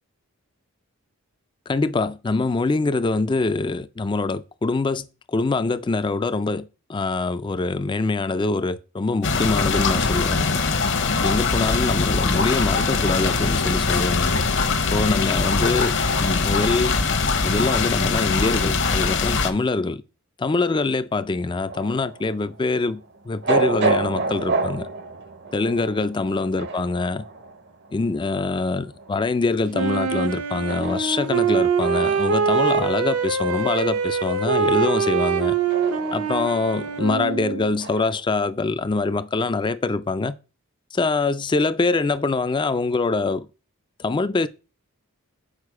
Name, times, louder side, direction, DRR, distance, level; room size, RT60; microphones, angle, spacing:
voice 1, 1.7-14.4 14.9-17.0 17.4-20.0 20.4-24.9 25.5-27.2 27.9-35.6 36.1-40.4 40.9-43.5 44.0-44.5, left 3 dB, 20° left, 0.3 m, -24 dB
sound 1, 9.2-19.5, left 4 dB, 55° left, 0.9 m, -22 dB
sound 2, 21.7-38.2, right 3 dB, 50° right, 0.7 m, -31 dB
Wind instrument woodwind instrument, 29.7-37.7, right 5 dB, 85° right, 0.9 m, -23 dB
6.5 x 5.0 x 4.8 m
head